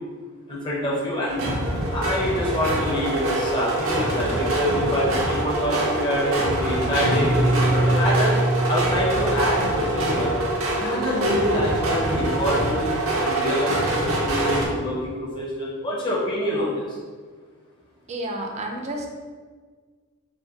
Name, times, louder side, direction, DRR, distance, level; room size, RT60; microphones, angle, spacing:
voice 1, 0.5-1.4 1.9-8.3 8.7-10.4 10.8-17.0, left 1 dB, 25° left, -5 dB, 0.5 m, -26 dB
sound 1, 1.3-14.7, right 2 dB, 85° right, 0.7 m, -25 dB
Guitar, 6.9-9.5, right 1 dB, 80° left, 0.7 m, -23 dB
voice 2, 18.1-19.1, right 1 dB, 35° right, 2 dB, 0.4 m, -30 dB
3.7 x 2.2 x 3.3 m, 1.5 s
head